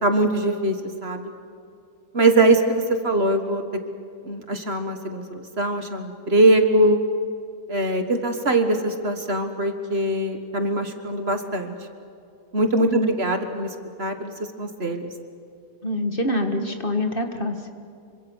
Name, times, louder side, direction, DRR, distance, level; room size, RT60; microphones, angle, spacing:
voice 1, 0.0-0.7 1.0-1.3 2.1-3.6 4.3-7.0 7.7-11.7 12.5-13.7 14.0-14.3 14.6-15.1, right 2 dB, 45° right, 6 dB, 1.8 m, -22 dB
voice 2, 15.8-17.7, equal, 35° left, 5 dB, 1.8 m, -25 dB
26.5 x 25.0 x 6.4 m, 2.5 s
omnidirectional pair, 1.5 m